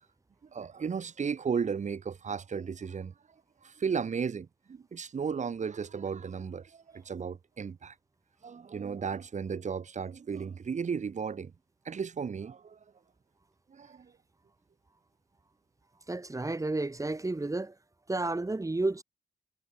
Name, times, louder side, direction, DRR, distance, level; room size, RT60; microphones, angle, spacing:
voice 1, 0.5-3.1 3.6-7.9 8.4-11.5 11.9-12.8 13.7-14.1, right 6 dB, 50° right, 4.0 m, -34 dB
voice 2, 16.1-17.7 18.1-19.0, right 2 dB, 20° right, 3.8 m, -31 dB
hypercardioid pair, 45°, 16 cm